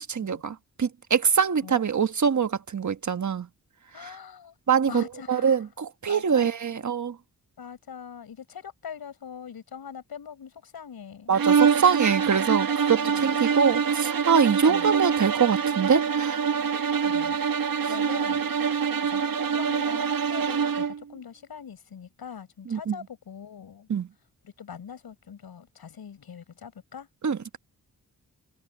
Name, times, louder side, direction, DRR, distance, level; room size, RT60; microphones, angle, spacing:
voice 1, 0.0-3.5 4.0-4.1 4.7-7.2 11.3-16.4 17.8-17.9 22.7-23.0 23.9-24.1 27.2-27.6, right 6 dB, 50° right, 1.3 m, -24 dB
voice 2, 3.9-4.6 4.9-5.6 6.1-6.5 7.6-11.4 13.0-13.4 14.7-14.9 17.0-17.5 17.8-23.9 24.4-27.1, left 7 dB, 85° left, 7.2 m, -42 dB
sound 1, 11.3-21.0, right 6 dB, 70° right, 1.6 m, -25 dB
cardioid pair, 65°, 36 cm